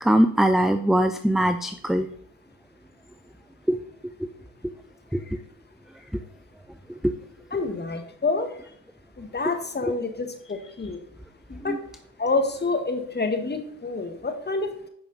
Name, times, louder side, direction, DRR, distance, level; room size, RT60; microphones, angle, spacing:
voice 1, 0.0-2.1 3.7-3.8 4.2-4.3 5.1-5.2 7.0-7.1 11.7-11.8, right 1 dB, ahead, 9 dB, 0.4 m, -21 dB
voice 2, 7.5-8.5 9.2-11.0 11.5-11.8 12.2-14.9, left 3 dB, 25° left, 6 dB, 1.6 m, -28 dB
8.8 x 5.9 x 4.0 m, 0.67 s
supercardioid pair, 75°, 44 cm